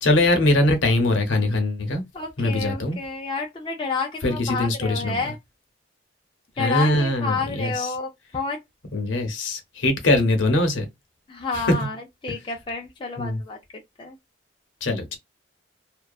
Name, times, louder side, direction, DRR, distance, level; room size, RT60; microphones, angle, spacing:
voice 1, 0.0-2.0 2.4-3.0 4.2-5.3 6.6-8.0 8.9-10.9 11.5-11.9 12.3-12.4 13.2-13.4 14.8-15.2, left 1 dB, 70° left, 0.7 m, -22 dB
voice 2, 2.1-5.4 6.6-8.1 8.3-8.6 11.3-11.9 12.2-13.6 14.0-14.1, left 4 dB, 25° left, 0.4 m, -29 dB
2.6 x 2.1 x 2.3 m
head